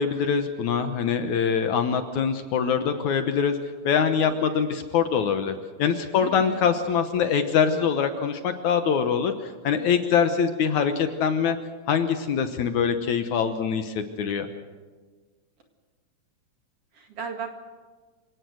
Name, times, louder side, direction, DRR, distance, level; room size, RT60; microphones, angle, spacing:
voice 1, 0.0-3.6 3.8-11.6 11.9-14.5, left 7 dB, 65° left, 8 dB, 2.2 m, -24 dB
voice 2, 4.3-4.7 6.2-6.7 16.9-17.5, right 6 dB, 50° right, 4 dB, 2.7 m, -37 dB
27.0 x 17.5 x 6.4 m, 1.4 s
omnidirectional pair, 4.1 m